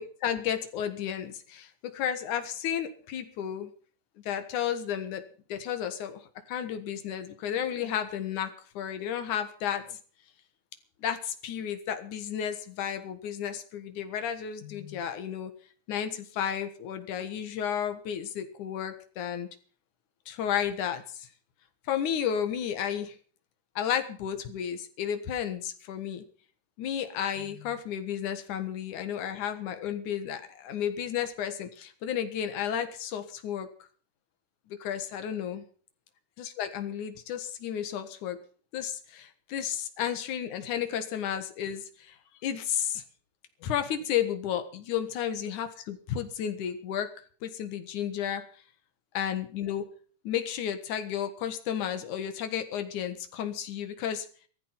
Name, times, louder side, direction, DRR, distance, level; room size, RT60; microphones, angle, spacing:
voice 1, 0.0-3.7 4.3-5.2 5.5-6.2 6.5-10.0 11.0-15.5 15.9-19.5 20.3-21.3 21.9-23.2 23.8-26.2 26.8-33.7 34.7-35.6 36.4-38.4 38.7-42.2 42.4-43.0 43.6-47.1 47.4-48.4 49.1-49.8 50.2-54.3, left 9 dB, 90° left, 8 dB, 3.0 m, -32 dB
15.5 x 14.0 x 5.8 m, 0.43 s
omnidirectional pair, 3.4 m